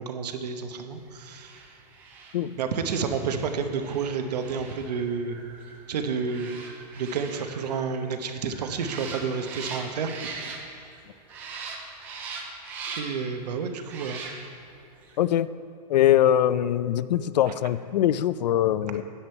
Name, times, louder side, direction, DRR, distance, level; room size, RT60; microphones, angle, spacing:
voice 1, 0.0-1.5 2.6-5.4 5.9-6.5 7.0-10.3 12.9-14.3 17.5-17.6, right 5 dB, 70° right, 7 dB, 1.0 m, -30 dB
sound 1, 1.2-11.0 11.3-13.3 13.8-14.7 15.0-15.2, right 4 dB, 10° right, 0.3 m, -41 dB
voice 2, 15.2-15.5 15.9-19.0, left 11 dB, 80° left, 16 dB, 0.4 m, -22 dB
10.0 x 8.8 x 4.4 m, 2.7 s
supercardioid pair, 175°, 21 cm